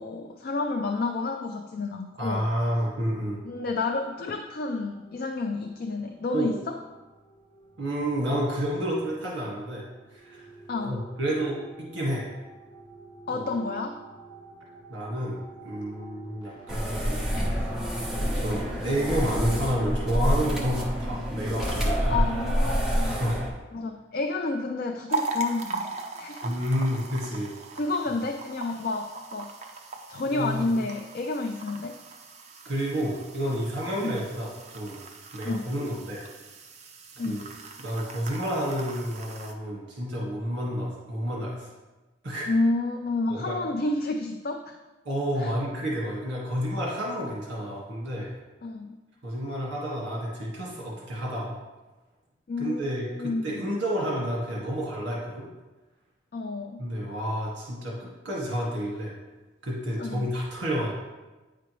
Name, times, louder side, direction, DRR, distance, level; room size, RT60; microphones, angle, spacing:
voice 1, 0.0-2.4 3.4-6.8 10.7-11.0 13.3-14.0 22.1-23.2 23.7-26.5 27.8-29.5 30.1-32.0 34.0-34.2 35.4-35.7 37.2-37.5 42.5-44.8 45.4-45.6 48.6-49.0 52.5-53.6 56.3-56.9 60.0-60.3, left 3 dB, 50° left, 4 dB, 0.4 m, -30 dB
voice 2, 2.2-3.4 6.3-6.5 7.8-9.8 10.1-10.5 10.8-12.2 13.3-13.4 14.9-17.2 17.5-17.8 18.2-22.1 23.0-23.4 26.4-27.5 30.2-30.7 32.6-35.0 35.3-36.2 37.2-37.5 37.8-41.7 42.2-42.5 43.3-43.6 45.0-48.3 49.2-51.6 52.6-55.4 56.8-59.1 59.6-60.9, equal, 65° right, -4 dB, 1.6 m, -30 dB
sound 1, 3.5-19.7, right 3 dB, 25° left, 1.0 m, -49 dB
sound 2, 16.7-23.5, equal, 5° right, 0.9 m, -27 dB
sound 3, 25.1-39.5, right 3 dB, 35° right, 0.6 m, -39 dB
9.0 x 5.0 x 3.1 m, 1.2 s
head